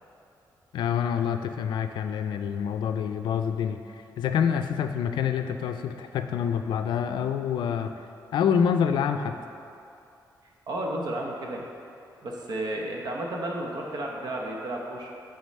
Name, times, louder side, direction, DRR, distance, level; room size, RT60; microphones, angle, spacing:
voice 1, 0.7-3.8 4.2-7.9 8.3-9.4, left 8 dB, 90° left, 8 dB, 0.4 m, -26 dB
voice 2, 10.7-11.6 12.2-15.1, right 1 dB, 65° right, 0 dB, 1.0 m, -32 dB
8.5 x 3.9 x 4.2 m, 2.6 s
cardioid pair, 105°, 8 cm